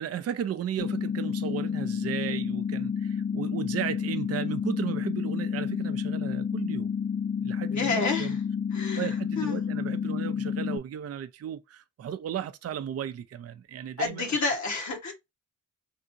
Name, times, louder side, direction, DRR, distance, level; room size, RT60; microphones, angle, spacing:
voice 1, 0.0-6.9 7.4-8.4 8.9-14.4, right 9 dB, 50° right, 0.4 m, -35 dB
sound 1, 0.8-10.8, left 7 dB, 40° left, 0.5 m, -30 dB
voice 2, 7.7-8.4 8.7-9.6 14.0-15.1, left 4 dB, 65° left, 1.4 m, -30 dB
3.5 x 2.7 x 2.6 m
cardioid pair, 90°, 31 cm